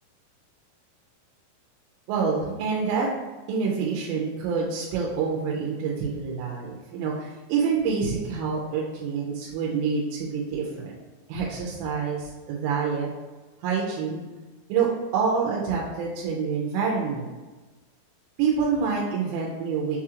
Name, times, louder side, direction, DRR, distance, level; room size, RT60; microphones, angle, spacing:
voice 1, 2.1-3.1 3.5-11.0 11.3-13.1 13.6-14.2 14.7-17.3 18.4-20.0, right 5 dB, 90° right, -3 dB, 2.9 m, -27 dB
6.3 x 2.4 x 2.9 m, 1.2 s
omnidirectional pair, 4.9 m